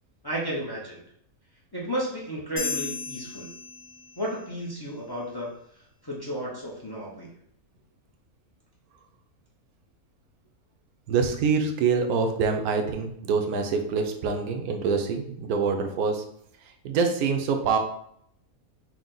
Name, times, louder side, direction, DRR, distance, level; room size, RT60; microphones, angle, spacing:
voice 1, 0.2-1.0 1.7-3.5 4.2-7.3, equal, 30° left, -4 dB, 0.4 m, -33 dB
sound 1, 2.6-4.4, left 4 dB, 65° left, 1.8 m, -35 dB
voice 2, 11.1-16.2 16.6-17.8, right 5 dB, 85° right, 5 dB, 1.1 m, -25 dB
4.7 x 2.1 x 3.8 m, 0.70 s
omnidirectional pair, 1.5 m